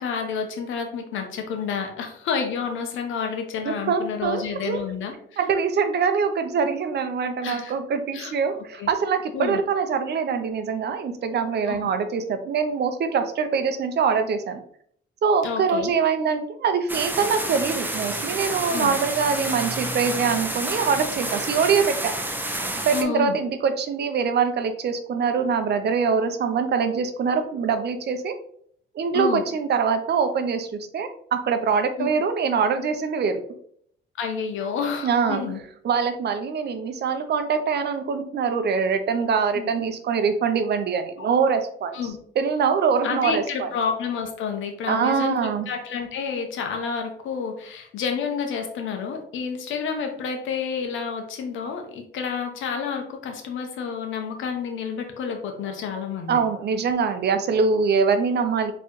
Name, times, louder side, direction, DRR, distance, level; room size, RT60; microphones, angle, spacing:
voice 1, 0.0-5.1 7.4-7.7 8.1-8.3 8.8-8.9 9.3-9.6 11.7-11.9 15.4-15.9 18.7-18.9 22.9-23.4 29.1-29.4 32.0-32.1 34.2-35.6 39.5-39.7 41.2-41.3 41.9-42.2 43.0-56.4, left 6 dB, 80° left, 5 dB, 0.9 m, -29 dB
voice 2, 3.6-4.8 5.4-14.6 15.2-22.0 22.8-28.3 28.9-30.7 30.9-33.4 35.0-35.4 35.8-42.0 42.4-43.7 44.9-45.7 56.3-58.7, right 6 dB, 55° right, 8 dB, 0.7 m, -23 dB
sound 1, 16.9-23.0, right 1 dB, 10° right, 0.7 m, -29 dB
4.4 x 3.2 x 3.1 m, 0.64 s
cardioid pair, 90°, 20 cm